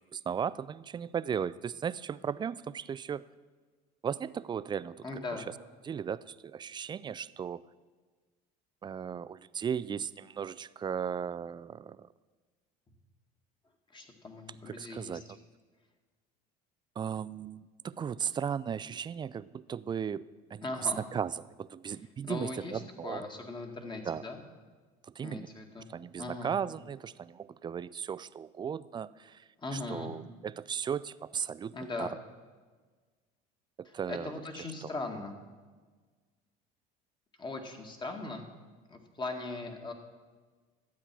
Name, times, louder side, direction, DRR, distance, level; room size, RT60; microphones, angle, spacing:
voice 1, 0.0-3.2 4.0-5.1 5.8-7.6 8.8-12.1 14.7-15.2 17.0-20.2 20.5-20.6 21.1-21.3 21.6-23.2 24.1-24.2 25.2-25.5 25.9-29.4 29.7-32.1 33.8-34.3, right 7 dB, 25° right, 17 dB, 0.4 m, -36 dB
voice 2, 5.0-5.5 13.9-15.4 20.6-21.0 22.2-24.4 25.2-25.9 26.2-26.6 29.6-30.1 31.7-32.1 33.8-35.4 37.4-38.4 38.9-39.9, left 3 dB, 25° left, 4 dB, 1.9 m, -39 dB
12.5 x 8.4 x 6.1 m, 1.4 s
supercardioid pair, 100°, 19 cm